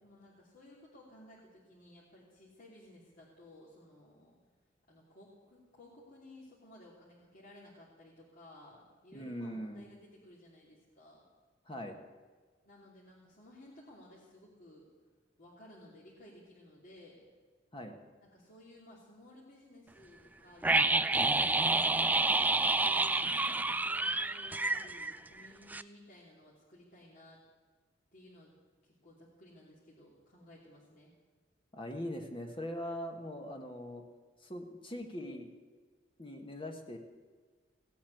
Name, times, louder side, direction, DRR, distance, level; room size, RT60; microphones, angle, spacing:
voice 1, 0.0-4.4 4.9-11.2 12.6-14.9 15.4-17.3 18.3-22.3 22.8-27.4 28.1-28.5 28.8-31.1, left 1 dB, 50° left, -7 dB, 3.1 m, -56 dB
voice 2, 9.1-9.8 11.6-12.0 17.7-18.0 31.7-34.0 34.4-35.5 36.2-37.0, left 1 dB, 30° left, 3 dB, 1.6 m, -41 dB
sound 1, 20.6-25.5 25.7-25.8, right 2 dB, 10° right, 0.4 m, -29 dB
17.5 x 8.5 x 9.5 m, 1.4 s
head